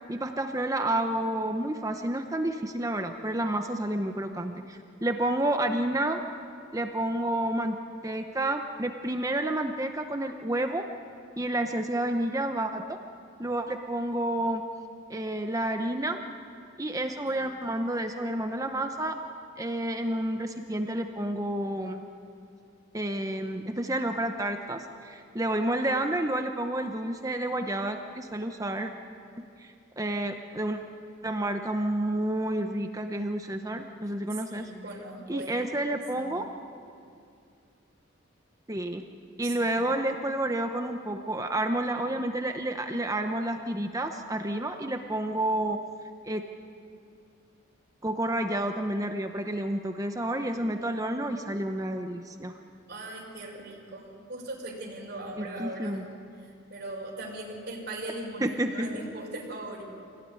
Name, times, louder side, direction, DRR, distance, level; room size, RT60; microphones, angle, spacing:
voice 1, 0.1-6.2 6.7-7.8 8.0-10.8 11.4-13.0 13.4-14.6 15.1-16.2 16.8-19.2 19.6-22.0 22.9-28.9 29.6-30.8 31.2-34.7 35.3-36.5 38.7-39.0 39.4-45.8 46.2-46.4 48.0-52.5 55.4-56.0 58.4-58.9, right 1 dB, 15° right, 5 dB, 0.9 m, -30 dB
voice 2, 34.3-36.5 39.4-39.8 52.9-56.0 56.4-59.8, right 2 dB, 50° right, -4 dB, 5.5 m, -40 dB
25.5 x 18.0 x 9.7 m, 2.4 s
head